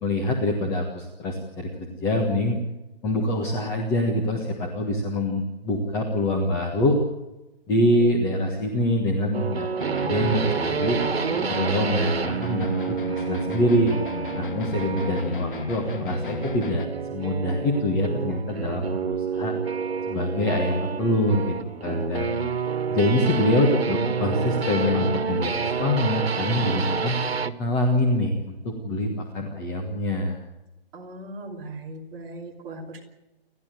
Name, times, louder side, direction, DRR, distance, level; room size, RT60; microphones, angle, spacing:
voice 1, 0.0-2.6 3.0-7.0 7.7-9.7 10.0-11.0 11.5-13.9 14.4-19.5 20.1-21.5 21.8-22.3 22.9-27.2 27.6-30.4, left 1 dB, 10° left, 1 dB, 1.4 m, -25 dB
sound 1, 9.3-27.6, right 5 dB, 85° right, 1.7 m, -29 dB
sound 2, 9.8-16.8, left 5 dB, 55° left, 2.1 m, -35 dB
voice 2, 30.9-33.0, right 2 dB, 10° right, -2 dB, 3.0 m, -39 dB
29.5 x 12.5 x 9.2 m, 0.97 s
hypercardioid pair, 170°, 30 cm